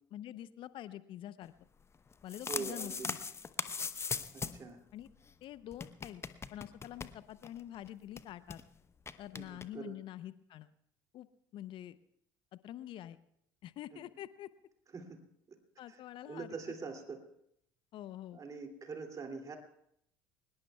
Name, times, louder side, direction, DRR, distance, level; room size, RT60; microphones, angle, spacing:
voice 1, 0.1-1.5 2.2-3.2 4.9-5.1 5.4-6.2 6.5-8.6 9.2-10.7 11.1-11.3 11.5-12.0 12.5-13.2 13.6-14.5 15.8-16.5 17.9-18.4, left 12 dB, 50° left, 15 dB, 0.7 m, -46 dB
sound 1, 2.1-4.7 5.0-5.1 5.3-5.4 5.7-7.6 7.9-8.0 8.2-8.6 9.1-9.7, left 5 dB, 25° left, 0.8 m, -40 dB
voice 2, 2.5-3.1 4.3-4.8 9.3-9.9 13.9-14.0 14.9-15.2 15.9-16.0 16.2-17.2 18.3-19.6, right 4 dB, 30° right, 4 dB, 2.6 m, -43 dB
24.5 x 20.5 x 2.3 m, 0.74 s
hypercardioid pair, 65°, 11 cm